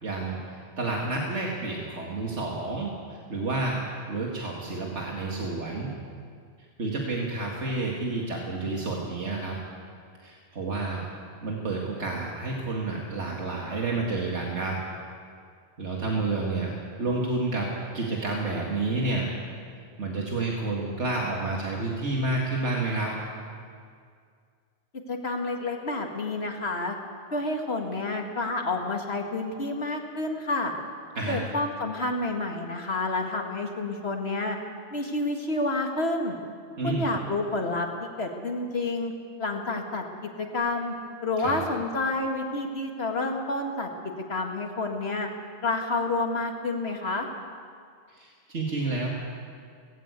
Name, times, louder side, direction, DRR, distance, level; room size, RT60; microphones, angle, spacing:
voice 1, 0.0-3.8 4.1-5.9 6.8-9.6 10.2-11.0 11.4-14.8 15.8-19.3 20.0-23.1 31.2-31.4 36.8-37.0 41.4-41.6 48.1-49.1, right 2 dB, 90° right, -2 dB, 2.4 m, -30 dB
voice 2, 25.1-27.0 27.3-30.7 31.3-34.6 34.9-36.4 36.8-39.1 39.4-40.9 41.2-43.9 44.3-45.3 45.6-47.3, left 2 dB, 65° left, 2 dB, 2.4 m, -29 dB
18.5 x 17.0 x 8.3 m, 2.1 s
omnidirectional pair, 1.1 m